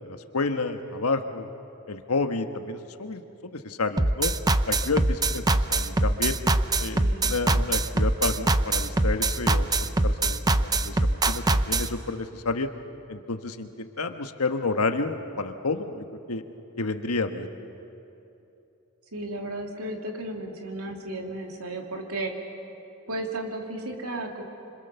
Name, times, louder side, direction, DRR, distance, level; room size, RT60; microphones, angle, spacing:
voice 1, 0.0-1.5 1.9-4.3 4.7-6.4 6.8-12.7 13.1-16.4 16.8-17.5, left 3 dB, 85° left, 7 dB, 1.4 m, -30 dB
sound 1, 4.0-11.9, right 2 dB, 20° right, 0.6 m, -22 dB
voice 2, 6.9-7.4 19.1-22.3 23.1-24.4, right 1 dB, 80° right, 1 dB, 2.9 m, -34 dB
26.5 x 26.0 x 7.0 m, 2.9 s
head